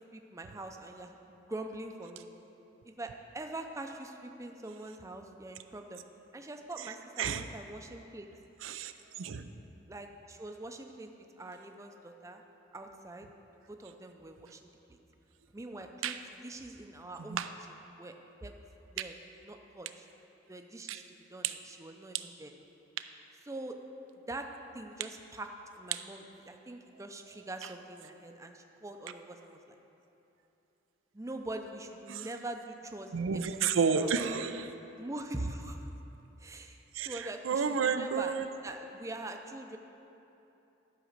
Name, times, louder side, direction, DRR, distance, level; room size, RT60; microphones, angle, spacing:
voice 1, 0.1-2.3 2.8-6.0 6.3-8.3 9.9-11.1 11.4-12.4 12.7-13.3 13.7-15.0 15.5-16.1 16.4-17.4 18.0-18.1 18.4-18.5 18.9-19.1 19.4-20.1 20.5-21.0 21.3-22.5 23.5-23.8 24.3-24.5 24.7-25.5 25.7-29.7 31.1-34.1 35.0-35.9 36.4-38.4 38.6-39.8, right 2 dB, 15° right, 4 dB, 0.5 m, -43 dB
voice 2, 8.6-9.5 16.0-16.2 17.3-17.5 20.9-21.0 21.4-21.5 25.9-26.0 32.1-32.3 33.1-34.7 36.9-38.5, right 6 dB, 90° right, 9 dB, 0.5 m, -31 dB
12.0 x 4.9 x 6.5 m, 3.0 s
head